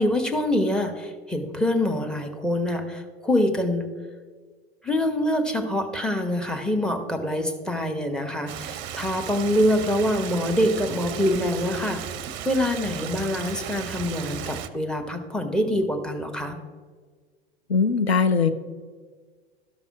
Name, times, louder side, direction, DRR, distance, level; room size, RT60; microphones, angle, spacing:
voice 1, 0.0-3.9 4.8-12.0 12.4-16.6, left 1 dB, 5° left, 6 dB, 0.9 m, -25 dB
Stream, 8.5-14.7, right 10 dB, 40° right, 0.6 m, -35 dB
voice 2, 17.7-18.5, left 5 dB, 90° left, 10 dB, 0.6 m, -20 dB
12.5 x 5.4 x 4.8 m, 1.5 s
figure-of-eight pair, 80°, 30 cm